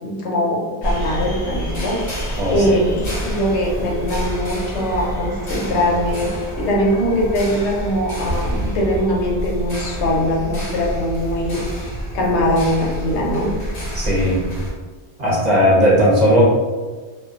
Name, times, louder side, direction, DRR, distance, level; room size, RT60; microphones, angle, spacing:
voice 1, 0.0-2.0 2.5-13.5, equal, 90° left, -2 dB, 0.9 m, -21 dB
sound 1, 0.8-14.7, equal, 60° left, 1.0 m, -27 dB
voice 2, 2.4-2.8 13.9-14.5 15.2-16.4, equal, 45° right, -6 dB, 0.7 m, -16 dB
2.6 x 2.1 x 2.3 m, 1.4 s
omnidirectional pair, 1.1 m